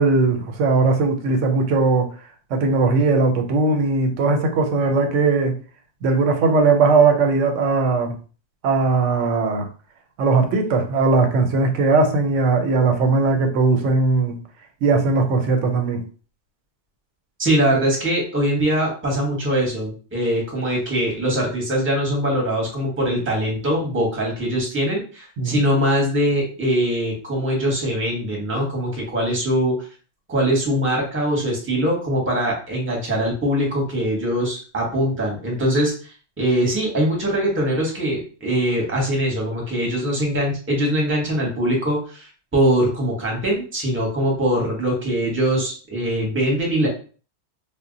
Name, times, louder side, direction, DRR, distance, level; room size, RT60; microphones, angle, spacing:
voice 1, 0.0-2.1 2.5-5.6 6.0-8.1 8.6-9.7 10.2-14.4 14.8-16.0 25.4-25.6, right 3 dB, 90° right, 5 dB, 0.9 m, -19 dB
voice 2, 17.4-29.9 30.3-35.9 36.4-46.9, equal, 10° right, -2 dB, 0.7 m, -22 dB
2.1 x 2.0 x 3.7 m, 0.38 s
omnidirectional pair, 1.2 m